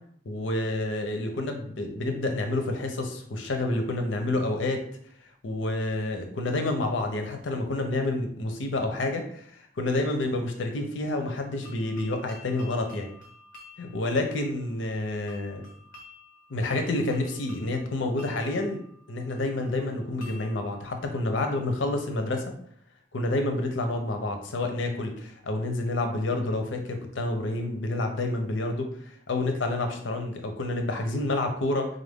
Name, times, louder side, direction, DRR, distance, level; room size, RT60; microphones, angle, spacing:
voice 1, 0.3-4.8 5.4-13.1 13.8-15.6 16.5-18.8 19.1-22.4 23.1-28.9 29.3-31.9, left 2 dB, 80° left, 5 dB, 0.6 m, -29 dB
sound 1, 11.3-22.1, left 3 dB, 45° left, 0.9 m, -52 dB
3.9 x 2.5 x 3.5 m, 0.63 s
head